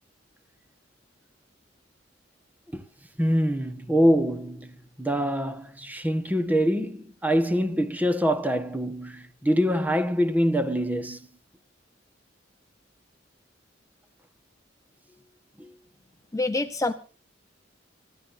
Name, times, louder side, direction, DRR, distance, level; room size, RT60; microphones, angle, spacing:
voice 1, 3.2-11.3 15.6-15.7, equal, 10° right, 1.3 m, -25 dB
voice 2, 16.3-16.9, left 2 dB, 15° left, 0.7 m, -26 dB
27.0 x 14.0 x 2.6 m
head